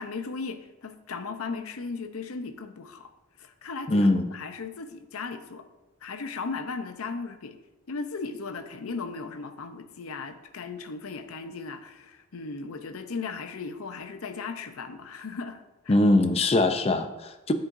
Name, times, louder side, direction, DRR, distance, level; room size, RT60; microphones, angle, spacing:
voice 1, 0.0-3.1 3.4-5.6 6.0-7.6 7.9-16.0, left 4 dB, 85° left, 9 dB, 0.7 m, -37 dB
voice 2, 3.9-4.3 15.9-17.5, left 2 dB, 30° left, 9 dB, 0.5 m, -22 dB
9.7 x 7.7 x 2.6 m, 1.1 s
head